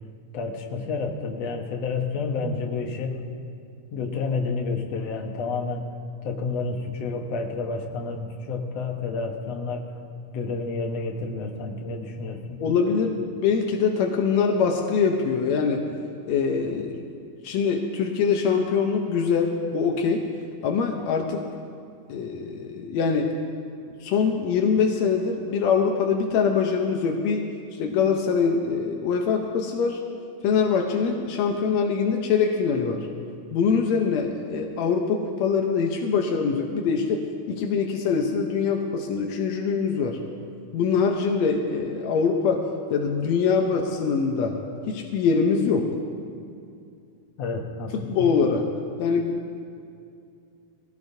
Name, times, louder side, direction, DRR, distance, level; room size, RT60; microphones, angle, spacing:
voice 1, 0.3-3.2 3.9-5.8 6.2-9.9 10.3-12.6 47.4-48.3, left 4 dB, 60° left, 2 dB, 1.8 m, -30 dB
voice 2, 12.6-15.9 16.3-17.1 17.4-20.3 20.6-21.4 22.1-23.3 24.0-27.5 27.8-30.0 30.4-33.1 33.5-40.2 40.7-44.6 44.9-45.9 48.1-48.7 49.0-49.4, left 5 dB, 80° left, 2 dB, 1.5 m, -23 dB
22.0 x 16.5 x 2.7 m, 2.4 s
omnidirectional pair, 4.2 m